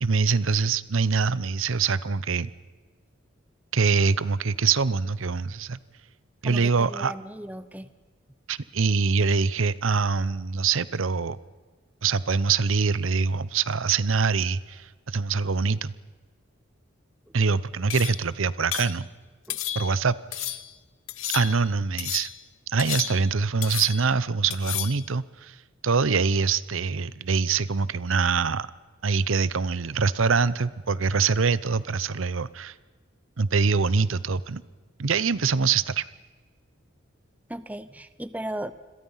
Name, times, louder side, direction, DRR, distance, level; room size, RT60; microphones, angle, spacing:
voice 1, 0.0-2.5 3.7-5.8 6.4-7.1 8.5-11.4 12.0-15.9 17.3-19.1 19.7-20.6 21.3-22.3 22.7-25.6 25.8-28.7 29.0-32.7 33.4-34.6 35.0-36.1, right 5 dB, 80° right, 18 dB, 0.7 m, -24 dB
voice 2, 6.4-7.9 19.5-19.6 37.5-38.7, right 1 dB, 5° right, 13 dB, 0.7 m, -36 dB
sound 1, 17.9-18.3 18.7-19.0 19.5-20.0 20.3-20.7 21.1-21.7 22.0-22.4 22.8-23.4 23.6-24.1 24.5-25.0, left 13 dB, 90° left, 1.2 m, -33 dB
28.5 x 22.0 x 5.7 m, 1.4 s
head